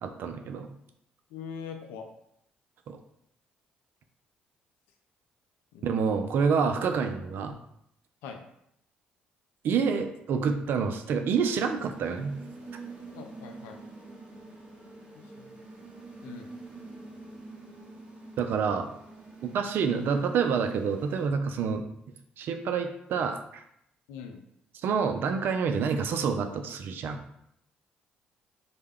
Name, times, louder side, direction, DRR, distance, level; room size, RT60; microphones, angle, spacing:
voice 1, 0.0-0.7 2.9-3.0 5.8-7.6 9.6-12.4 18.4-18.9 19.4-21.8 22.4-23.6 24.8-27.2, right 6 dB, 65° right, 6 dB, 0.3 m, -28 dB
voice 2, 1.3-2.0 5.7-6.3 8.2-8.4 13.1-13.8 15.1-15.5 16.2-16.5 24.1-24.4, left 6 dB, 80° left, 5 dB, 0.3 m, -43 dB
sound 1, 11.4-21.3, right 3 dB, 30° right, 0.8 m, -46 dB
2.1 x 2.1 x 3.4 m, 0.75 s
hypercardioid pair, 55°, 4 cm